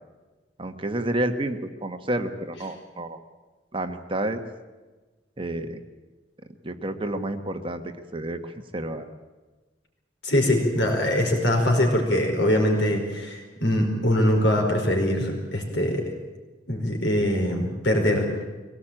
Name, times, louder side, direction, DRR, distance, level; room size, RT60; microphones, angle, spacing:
voice 1, 0.6-3.2 3.7-4.4 5.4-5.8 6.6-7.8 8.1-9.1, right 1 dB, 30° right, 6 dB, 1.5 m, -29 dB
voice 2, 10.2-16.1 16.7-18.3, left 1 dB, 80° left, 3 dB, 5.1 m, -23 dB
24.0 x 18.0 x 9.0 m, 1.2 s
head